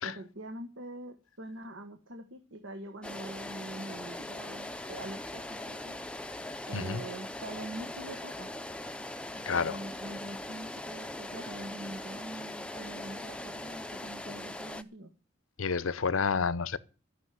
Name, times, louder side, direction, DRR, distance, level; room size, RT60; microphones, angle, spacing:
voice 1, 0.0-6.0 6.7-8.5 9.3-15.1, right 1 dB, 75° right, 1.4 m, -44 dB
sound 1, 3.0-14.8, left 1 dB, 5° left, 0.6 m, -41 dB
voice 2, 9.5-9.8 15.6-16.8, left 5 dB, 85° left, 0.7 m, -29 dB
12.5 x 6.3 x 9.6 m
head